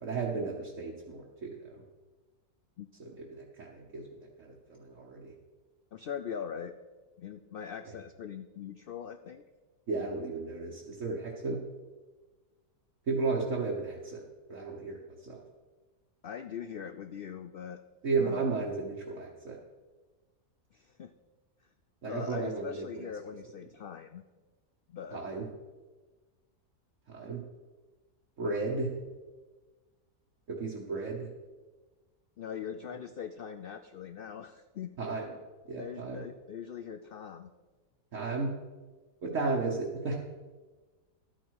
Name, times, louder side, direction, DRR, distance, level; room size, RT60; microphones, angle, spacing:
voice 1, 0.0-1.8 3.0-4.0 4.4-5.3 9.9-11.6 13.1-14.2 14.5-15.4 18.0-19.6 22.0-23.0 25.1-25.5 27.1-27.4 28.4-28.9 30.5-31.3 35.0-35.3 35.7-36.2 38.1-38.5 39.2-40.2, right 4 dB, 60° right, -3 dB, 1.5 m, -34 dB
voice 2, 5.9-6.7 7.2-9.4 16.2-17.8 18.2-18.4 20.7-21.1 22.0-24.2 24.9-25.2 32.4-35.2 35.8-37.5, left 8 dB, 90° left, 9 dB, 0.4 m, -41 dB
12.0 x 9.1 x 4.7 m, 1.3 s
omnidirectional pair, 1.6 m